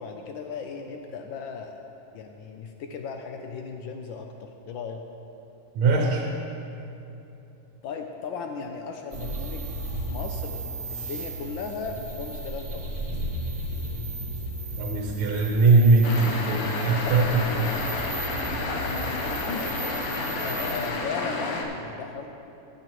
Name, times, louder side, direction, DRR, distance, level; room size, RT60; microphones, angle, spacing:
voice 1, 0.0-1.8 2.1-5.0 7.8-9.7 10.1-12.9 18.5-20.0 20.4-22.3, left 5 dB, 75° left, 4 dB, 1.2 m, -36 dB
voice 2, 5.8-6.3 14.8-17.7, right 3 dB, 80° right, 0 dB, 1.8 m, -21 dB
sound 1, 9.1-20.9, right 1 dB, 25° right, 1.1 m, -35 dB
sound 2, 16.0-21.6, left 3 dB, 90° left, 1.9 m, -30 dB
14.5 x 8.8 x 3.0 m, 2.9 s
omnidirectional pair, 2.3 m